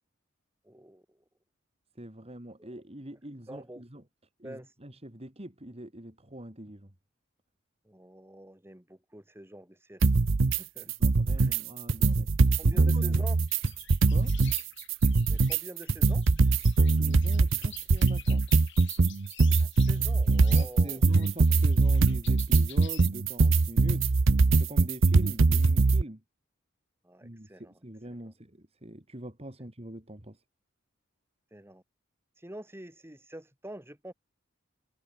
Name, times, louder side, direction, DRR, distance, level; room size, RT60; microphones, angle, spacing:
voice 1, 0.6-1.2 2.6-2.7 3.5-3.8 4.4-4.7 7.8-10.1 10.6-10.9 11.4-11.6 12.6-13.4 15.3-16.3 19.6-21.1 27.0-27.7 28.2-28.3 31.5-31.8 32.4-34.1, right 1 dB, 10° right, 5.7 m, -46 dB
voice 2, 2.0-4.0 4.4-6.9 11.0-12.3 12.6-13.2 14.1-14.3 17.0-18.6 20.5-24.1 24.5-26.2 27.2-30.4, right 1 dB, 30° right, 3.2 m, -43 dB
sound 1, 10.0-10.6 10.9-11.6 11.9-14.6 14.9-26.0, right 3 dB, 75° right, 0.7 m, -22 dB
sound 2, 13.5-23.1, left 12 dB, 65° left, 5.1 m, -50 dB
head